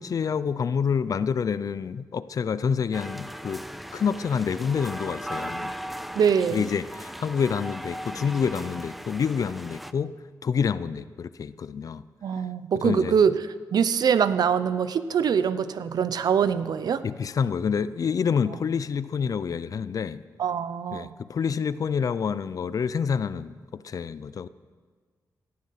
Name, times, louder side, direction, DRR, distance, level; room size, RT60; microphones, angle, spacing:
voice 1, 0.0-3.6 3.9-5.7 6.5-10.1 10.4-12.0 12.8-13.1 17.0-20.2 20.9-24.5, left 6 dB, 55° left, 16 dB, 0.6 m, -27 dB
sound 1, 2.9-9.9, equal, ahead, 0.6 m, -37 dB
voice 2, 6.2-6.7 12.2-13.4 13.7-17.0 18.5-18.6 20.4-21.1, right 7 dB, 70° right, 13 dB, 0.8 m, -23 dB
18.0 x 12.5 x 5.9 m, 1.5 s
cardioid pair, 90°, 7 cm